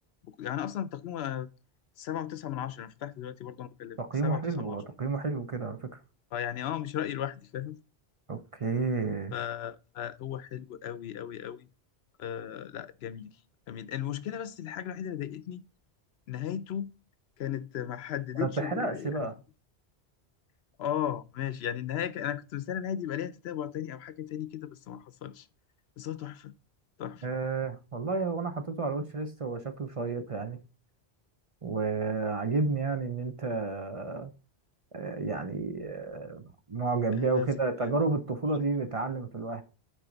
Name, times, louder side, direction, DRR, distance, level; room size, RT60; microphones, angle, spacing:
voice 1, 0.2-1.5 2.0-4.8 6.3-7.8 9.3-11.7 12.2-13.4 13.7-15.6 16.3-16.9 17.4-19.3 20.8-25.5 26.0-26.5 27.0-27.3 37.1-37.5 37.8-37.9, left 10 dB, 75° left, 0.8 m, -36 dB
voice 2, 4.0-6.0 8.3-9.3 18.4-19.3 27.2-30.6 31.6-34.3 34.9-36.4 36.7-39.6, right 3 dB, 35° right, 0.6 m, -31 dB
9.0 x 4.9 x 3.9 m
omnidirectional pair, 1.1 m